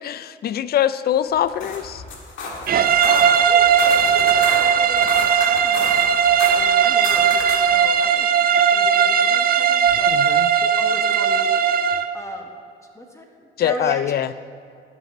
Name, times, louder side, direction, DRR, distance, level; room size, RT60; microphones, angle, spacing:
voice 1, 0.0-2.0 10.1-10.5 13.6-14.3, left 10 dB, 50° left, 15 dB, 0.4 m, -23 dB
sound 1, 1.3-7.8, left 3 dB, 80° left, 1.6 m, -32 dB
sound 2, 2.7-12.1, right 8 dB, 50° right, 0.5 m, -17 dB
voice 2, 3.0-8.3 8.7-10.2 10.4-12.5 12.9-14.3, equal, 15° left, 2 dB, 1.2 m, -37 dB
12.0 x 5.9 x 5.4 m, 2.3 s
cardioid pair, 90°, 20 cm